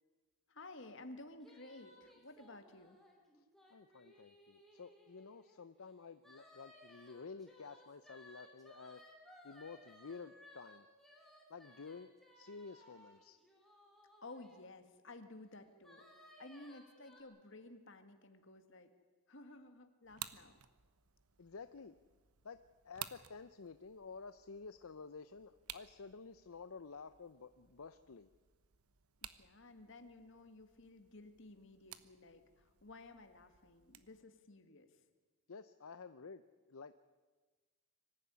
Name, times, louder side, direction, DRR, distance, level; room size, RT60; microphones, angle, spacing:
voice 1, 0.5-3.0 14.2-16.1 16.4-18.9 19.3-20.6 29.2-35.0, left 2 dB, 55° left, 7 dB, 2.0 m, -54 dB
sound 1, 1.4-5.6 6.2-14.6 15.8-17.2, left 1 dB, ahead, 3.3 m, -61 dB
voice 2, 3.7-9.0 9.4-10.9 11.5-13.4 21.4-22.0 22.4-22.6 22.8-28.3 35.5-36.9, left 4 dB, 75° left, 11 dB, 0.7 m, -51 dB
sound 2, 20.0-34.2, right 11 dB, 85° right, 1.0 m, -55 dB
24.5 x 15.0 x 9.7 m, 1.3 s
head